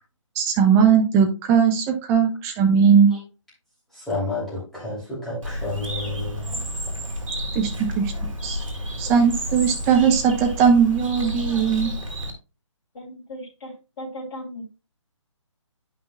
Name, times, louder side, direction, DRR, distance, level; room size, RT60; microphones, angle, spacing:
voice 1, 0.3-3.1 7.5-7.7 7.9-8.1 8.4-8.6 9.0-11.9, right 7 dB, 15° right, 3 dB, 1.0 m, -18 dB
voice 2, 3.9-6.5, left 2 dB, ahead, -9 dB, 3.0 m, -30 dB
Bird, 5.4-12.3, equal, 75° right, 2.5 m, -31 dB
voice 3, 12.9-14.6, equal, 30° left, -6 dB, 2.9 m, -37 dB
10.5 x 5.8 x 2.3 m, 0.30 s
figure-of-eight pair, 145°, 17 cm